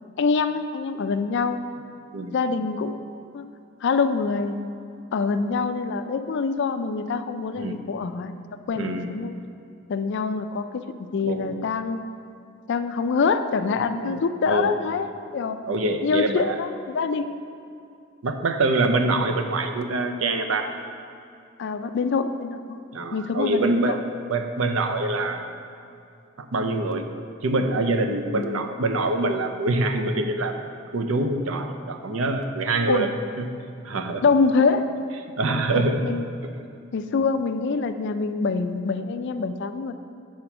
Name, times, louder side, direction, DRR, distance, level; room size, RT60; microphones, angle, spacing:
voice 1, 0.2-1.6 2.3-3.0 3.3-3.5 3.8-4.6 5.1-8.3 8.7-9.3 9.9-10.8 11.1-12.0 12.7-15.6 16.0-17.4 21.6-22.8 23.1-24.0 28.3-28.7 32.9-33.1 34.2-34.9 35.6-36.3 36.9-39.9, left 4 dB, 60° left, 10 dB, 0.4 m, -25 dB
voice 2, 8.7-9.1 11.2-11.5 14.0-14.2 14.5-14.7 15.7-16.6 18.2-20.7 22.9-24.0 24.3-25.5 26.4-27.0 27.4-30.6 30.9-33.1 33.4-33.5 33.8-34.2 35.4-36.0, right 2 dB, 75° right, 6 dB, 0.6 m, -25 dB
7.5 x 4.3 x 5.9 m, 2.5 s
head